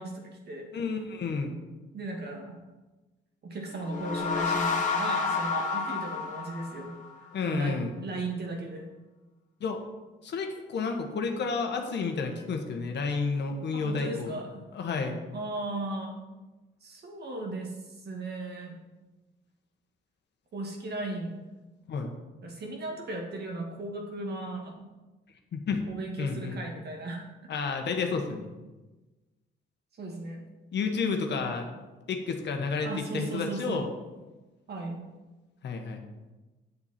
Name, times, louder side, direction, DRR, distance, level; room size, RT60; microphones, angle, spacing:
voice 1, 0.0-0.7 1.9-2.6 3.4-6.9 7.4-8.9 13.7-14.6 15.3-16.2 16.8-18.8 20.5-21.4 22.4-24.8 25.9-27.3 30.0-30.4 32.8-33.9 34.7-35.0, right 2 dB, 55° right, 1 dB, 2.1 m, -36 dB
voice 2, 0.7-1.5 7.3-7.9 9.6-9.8 10.2-14.3 14.7-15.2 21.9-22.1 25.5-25.8 26.2-26.6 27.5-28.5 30.7-31.7 32.1-33.9 35.6-36.0, left 4 dB, 60° left, 4 dB, 1.4 m, -31 dB
sound 1, 3.8-7.3, left 5 dB, 40° left, 1.6 m, -30 dB
8.6 x 7.3 x 4.4 m, 1.2 s
cardioid pair, 90°, 20 cm